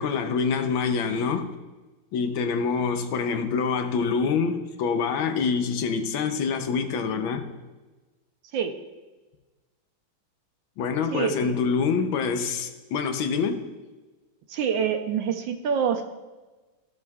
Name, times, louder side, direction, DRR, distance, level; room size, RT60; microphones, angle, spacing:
voice 1, 0.0-1.5 2.1-7.5 10.8-13.6, left 5 dB, 85° left, 1.6 m, -26 dB
voice 2, 11.1-11.5 14.5-16.0, right 7 dB, 75° right, 1.4 m, -26 dB
15.0 x 5.4 x 2.4 m
omnidirectional pair, 2.1 m